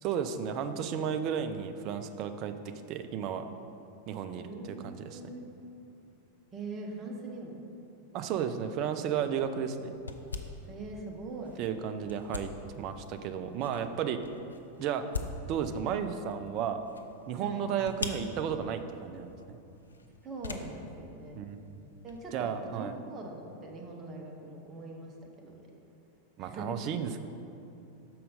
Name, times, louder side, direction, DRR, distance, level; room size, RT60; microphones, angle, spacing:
voice 1, 0.0-2.5 2.9-3.5 4.1-5.2 8.1-9.9 11.6-12.5 12.8-14.2 14.8-15.1 15.5-16.9 17.3-19.6 21.3-21.8 22.3-23.0 26.4-27.2, right 8 dB, 40° right, 8 dB, 0.4 m, -33 dB
voice 2, 4.3-5.4 6.5-7.6 10.7-11.6 17.4-17.7 20.2-21.4 22.0-25.1 25.4-25.5 26.4-26.7, right 2 dB, 25° right, 0 dB, 1.0 m, -42 dB
sound 1, 8.7-22.3, left 4 dB, 75° left, 0.4 m, -44 dB
6.3 x 4.3 x 5.1 m, 2.7 s
figure-of-eight pair, 90°, 0 cm